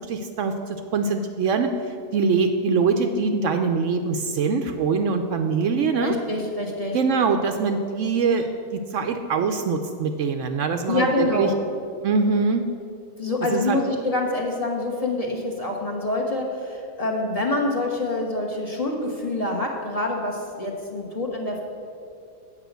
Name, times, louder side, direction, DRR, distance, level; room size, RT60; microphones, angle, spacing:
voice 1, 0.1-0.5 0.9-1.7 2.1-6.1 6.9-11.5 12.0-12.6 13.5-13.8, right 5 dB, 70° right, 6 dB, 0.8 m, -23 dB
voice 2, 6.0-7.0 10.9-11.5 13.2-21.6, left 2 dB, 25° left, -2 dB, 1.1 m, -26 dB
8.3 x 5.6 x 8.0 m, 2.5 s
omnidirectional pair, 1.5 m